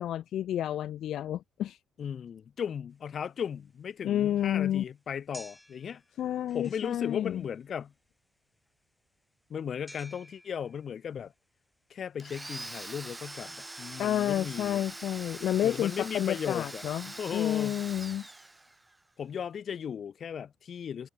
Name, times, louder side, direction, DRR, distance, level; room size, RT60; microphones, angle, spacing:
voice 1, 0.0-1.8 4.0-4.8 6.2-7.4 14.0-17.1 17.3-18.3, left 11 dB, 75° left, 0.6 m, -30 dB
voice 2, 2.0-6.0 6.5-7.9 9.5-11.3 11.9-14.8 15.6-17.8 19.2-21.1, left 8 dB, 50° left, 1.3 m, -36 dB
sound 1, 2.9-14.9, left 1 dB, 5° left, 1.6 m, -56 dB
Domestic sounds home sounds, 12.2-19.0, right 2 dB, 15° right, 0.4 m, -43 dB
open air
cardioid pair, 110°, 0 cm